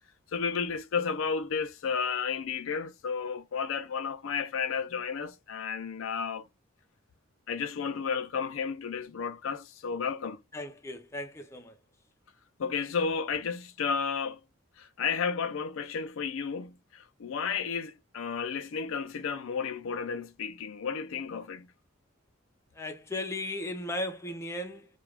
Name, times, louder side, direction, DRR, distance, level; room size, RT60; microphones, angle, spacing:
voice 1, 0.3-6.5 7.5-10.4 12.6-14.4 14.8-21.7, left 6 dB, 75° left, 0.4 m, -32 dB
voice 2, 10.5-11.8 22.8-24.9, left 1 dB, 15° left, 0.4 m, -36 dB
2.4 x 2.2 x 3.2 m
head